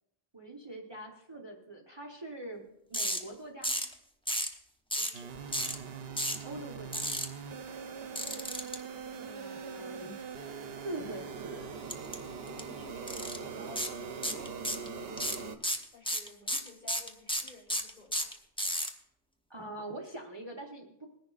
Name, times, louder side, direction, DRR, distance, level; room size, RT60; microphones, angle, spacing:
voice 1, 0.3-3.9 6.4-7.1 9.2-10.2 10.8-11.7 19.5-21.1, right 2 dB, 25° right, 0 dB, 1.0 m, -43 dB
sound 1, 2.9-3.2 3.6-3.9 4.3-4.5 4.9-5.2 5.5-5.7 6.2-6.4 6.9-7.2 8.2-8.7 11.9-12.2 12.5-12.6 13.1-13.4 13.8-13.9 14.2-14.9 15.2-18.9, equal, 5° left, 0.8 m, -32 dB
voice 2, 5.0-5.3 8.3-8.5 12.5-15.5 15.9-18.3, left 3 dB, 40° left, -3 dB, 3.6 m, -53 dB
sound 2, 5.1-15.6, right 5 dB, 65° right, 0.9 m, -42 dB
21.0 x 10.5 x 2.4 m, 0.81 s
omnidirectional pair, 1.1 m